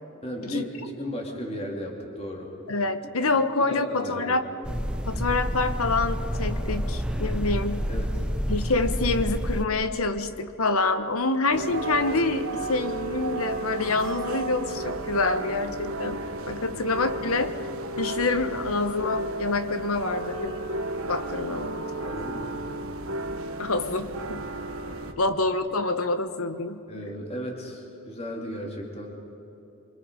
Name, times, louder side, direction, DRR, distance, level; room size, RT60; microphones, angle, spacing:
voice 1, 0.2-2.5 3.4-4.4 7.9-8.3 16.7-16.9 22.0-22.5 24.9-25.2 26.9-29.2, equal, 30° left, 0 dB, 2.7 m, -35 dB
voice 2, 2.7-4.5 5.1-7.9 8.5-17.5 18.0-20.6 21.1-21.8 23.6-24.4 25.2-26.8, left 3 dB, 80° left, 10 dB, 1.2 m, -27 dB
sound 1, 4.6-9.6, equal, 5° right, 0.8 m, -28 dB
sound 2, 11.5-25.1, right 2 dB, 75° right, 1.3 m, -33 dB
25.5 x 25.0 x 5.3 m, 2.9 s
head